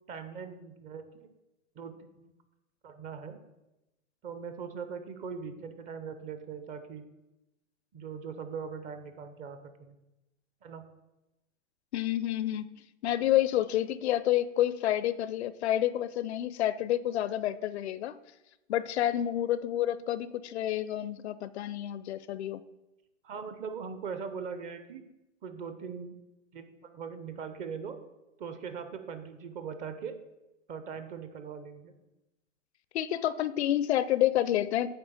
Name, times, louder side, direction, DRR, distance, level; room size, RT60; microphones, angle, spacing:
voice 1, 0.1-1.3 1.8-2.3 2.8-3.4 4.2-7.1 7.9-10.0 10.6-10.8 23.2-25.0 25.4-26.1 26.5-28.0 28.4-30.2 30.7-31.9, right 6 dB, 20° right, 9 dB, 0.5 m, -40 dB
voice 2, 11.9-12.7 13.0-18.2 18.7-22.6 32.9-34.9, left 12 dB, 60° left, 16 dB, 0.5 m, -29 dB
8.8 x 3.4 x 6.7 m, 0.98 s
hypercardioid pair, 125°, 37 cm